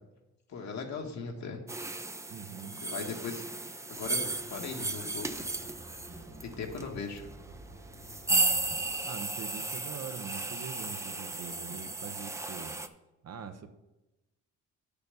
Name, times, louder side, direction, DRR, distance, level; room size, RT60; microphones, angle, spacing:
voice 1, 0.5-1.6 2.8-3.4 3.9-4.2 4.5-5.3 6.4-7.3, left 5 dB, 65° left, 2 dB, 1.5 m, -38 dB
sound 1, 1.7-12.9, right 2 dB, 10° right, 0.5 m, -35 dB
voice 2, 2.3-2.8 8.2-8.5 9.0-12.8 13.2-13.7, right 7 dB, 60° right, 7 dB, 0.8 m, -43 dB
sound 2, 3.9-8.9, right 1 dB, 75° right, 2.3 m, -51 dB
6.9 x 5.3 x 6.9 m, 0.99 s
cardioid pair, 90°, 30 cm